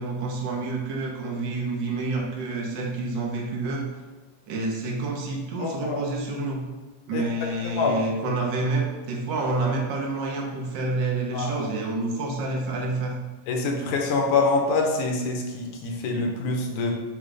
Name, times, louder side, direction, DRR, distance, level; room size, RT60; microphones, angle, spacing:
voice 1, 0.0-3.9 4.5-6.7 7.1-13.2, right 2 dB, 70° right, -1 dB, 1.0 m, -28 dB
voice 2, 5.6-6.0 7.1-7.2 7.7-8.0 11.3-11.7 13.5-16.9, left 3 dB, 75° left, 1 dB, 2.3 m, -25 dB
8.5 x 3.4 x 5.2 m, 1.2 s
omnidirectional pair, 3.6 m